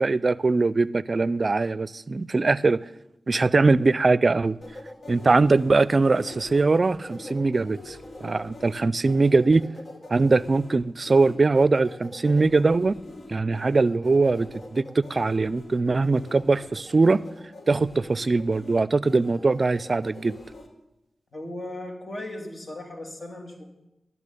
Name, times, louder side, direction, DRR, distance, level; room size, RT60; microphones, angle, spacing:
voice 1, 0.0-2.8 3.3-4.6 5.1-9.6 10.1-13.0 13.3-17.2 17.7-20.4, right 3 dB, 50° right, 0.4 m, -21 dB
sound 1, 4.6-20.7, left 2 dB, 70° left, 2.0 m, -43 dB
voice 2, 21.3-23.6, left 1 dB, 50° left, 3.1 m, -37 dB
12.0 x 7.0 x 9.9 m
cardioid pair, 50°, 0 cm